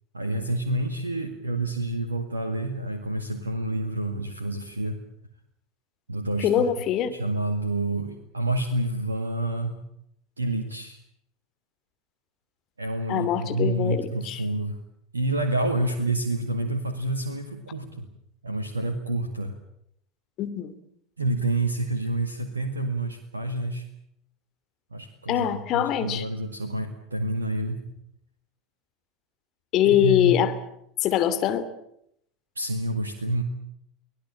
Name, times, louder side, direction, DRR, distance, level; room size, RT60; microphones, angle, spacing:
voice 1, 0.1-5.0 6.1-6.7 7.1-9.8 10.4-11.0 12.8-14.8 15.1-18.1 18.4-19.6 21.2-23.9 24.9-27.8 29.8-30.4 32.6-33.4, right 1 dB, 85° right, 5 dB, 1.9 m, -28 dB
voice 2, 6.4-7.1 13.1-14.4 20.4-20.7 25.3-26.3 29.7-30.5 31.0-31.6, left 10 dB, 45° left, 11 dB, 2.7 m, -23 dB
24.0 x 18.5 x 8.8 m, 0.75 s
figure-of-eight pair, 75°, 0 cm